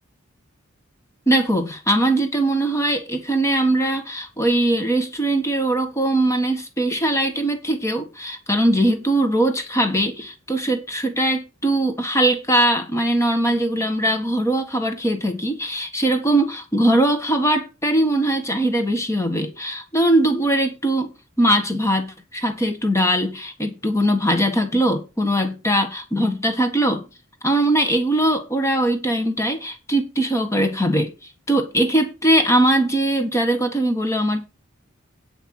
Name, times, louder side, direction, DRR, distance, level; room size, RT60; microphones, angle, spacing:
voice 1, 1.3-27.0 27.4-31.1 31.5-34.5, right 1 dB, 15° left, 1.5 m, -21 dB
9.2 x 6.7 x 6.5 m
head